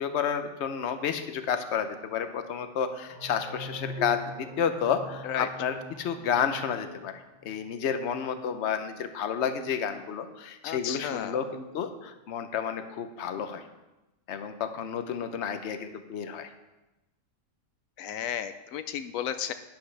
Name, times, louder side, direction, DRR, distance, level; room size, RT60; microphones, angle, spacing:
voice 1, 0.0-7.1 7.4-13.6 14.3-16.5, left 7 dB, 60° left, 8 dB, 1.0 m, -31 dB
sound 1, 3.1-7.6, left 2 dB, 15° right, 2.9 m, -42 dB
voice 2, 10.6-11.4 18.0-19.5, left 9 dB, 85° left, 10 dB, 1.0 m, -33 dB
11.5 x 10.0 x 3.3 m, 1.0 s
omnidirectional pair, 1.4 m